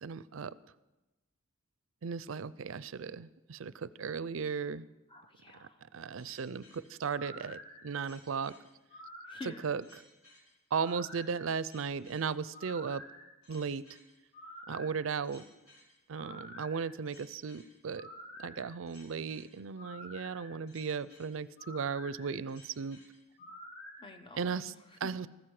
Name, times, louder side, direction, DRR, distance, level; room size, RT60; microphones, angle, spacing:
voice 1, 0.0-0.5 2.0-4.9 5.6-5.7 5.9-8.5 9.6-9.8 10.7-13.0 13.5-13.8 14.7-15.4 16.1-18.1 18.4-23.0 24.4-24.7 25.0-25.3, right 6 dB, 70° right, 17 dB, 0.5 m, -36 dB
voice 2, 5.1-5.8 9.3-9.8 23.4-23.5 24.0-25.0, left 2 dB, 25° left, 7 dB, 1.0 m, -49 dB
sound 1, 6.2-24.1, left 1 dB, 80° left, 5.7 m, -51 dB
14.5 x 13.5 x 4.9 m, 1.1 s
head